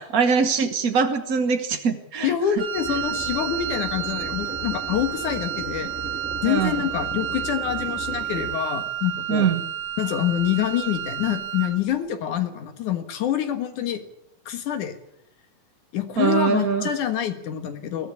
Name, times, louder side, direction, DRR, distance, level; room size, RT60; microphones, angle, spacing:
voice 1, 0.0-2.6 6.4-6.8 9.3-9.6 16.2-16.9, right 6 dB, 65° right, 6 dB, 0.8 m, -23 dB
voice 2, 2.2-5.9 6.4-9.5 10.0-14.0 14.5-14.9 15.9-18.1, left 10 dB, 75° left, 8 dB, 3.0 m, -26 dB
Wind instrument woodwind instrument, 2.6-11.8, right 12 dB, 50° right, 1.6 m, -31 dB
sound 1, 2.7-8.6, left 1 dB, 5° right, 1.2 m, -37 dB
22.0 x 14.5 x 8.4 m, 0.79 s
omnidirectional pair, 3.5 m